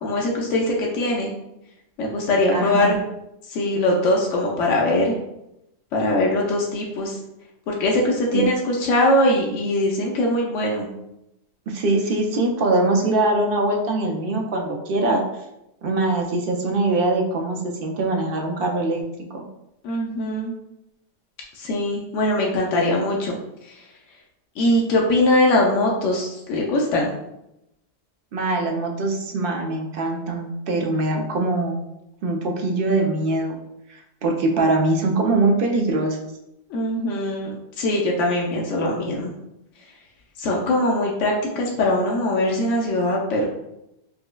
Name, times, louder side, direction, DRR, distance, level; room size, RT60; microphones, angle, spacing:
voice 1, 0.0-1.3 2.0-3.0 3.5-5.1 5.9-7.2 7.7-10.9 19.8-20.5 21.5-23.4 23.6-23.8 24.6-27.1 36.7-39.3 40.4-43.4, left 1 dB, 85° left, -1 dB, 1.0 m, -21 dB
voice 2, 2.5-2.9 8.3-8.5 11.7-15.2 15.8-19.0 19.3-19.5 28.3-31.8 32.2-33.6 33.9-36.2, right 2 dB, 60° right, 1 dB, 0.6 m, -22 dB
5.3 x 2.0 x 2.2 m, 0.86 s
omnidirectional pair, 1.2 m